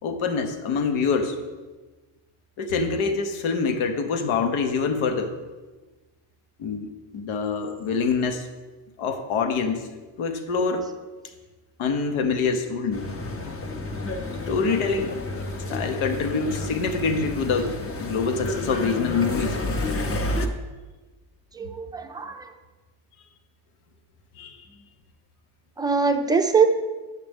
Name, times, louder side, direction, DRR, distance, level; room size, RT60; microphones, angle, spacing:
voice 1, 0.0-1.3 2.6-5.3 6.6-8.5 9.0-9.9 10.2-10.9 11.8-13.0 14.5-15.1 15.7-19.6 24.4-24.6, left 5 dB, 90° left, 6 dB, 1.0 m, -25 dB
sound 1, 12.9-20.5, left 2 dB, 30° left, 0.7 m, -30 dB
voice 2, 21.6-22.5 25.8-26.7, right 5 dB, 10° right, 5 dB, 0.4 m, -22 dB
9.6 x 7.5 x 3.5 m, 1.3 s
cardioid pair, 150°, 47 cm